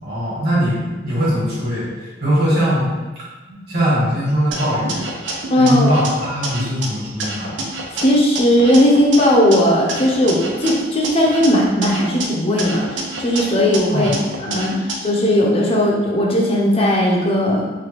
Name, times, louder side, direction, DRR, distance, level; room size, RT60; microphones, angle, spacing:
voice 1, 0.0-2.9 3.7-5.1 5.6-7.6 13.9-14.1, equal, 60° right, -8 dB, 1.3 m, -20 dB
sound 1, 4.5-6.9 7.2-9.6 9.9-12.2 12.6-14.9, right 2 dB, 90° right, 0.5 m, -28 dB
voice 2, 5.5-5.9 7.9-14.1 14.4-17.7, equal, 30° left, -2 dB, 0.5 m, -17 dB
3.2 x 2.2 x 2.9 m, 1.2 s
head